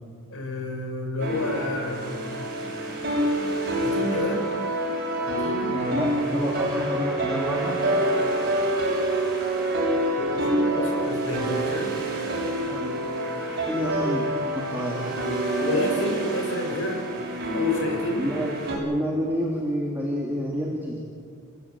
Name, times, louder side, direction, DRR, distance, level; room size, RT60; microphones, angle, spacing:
voice 1, 0.3-2.4 3.1-3.2 3.8-4.4 5.3-5.8 10.2-11.9 15.6-17.0 17.5-18.3, left 1 dB, 60° left, 3 dB, 5.6 m, -29 dB
sound 1, 1.2-18.8, right 1 dB, 45° right, 7.1 m, -27 dB
voice 2, 5.7-7.7 12.7-13.0 13.6-15.1 18.2-18.5 18.8-21.0, equal, 10° right, -3 dB, 3.0 m, -28 dB
29.5 x 16.0 x 9.0 m, 2.2 s
head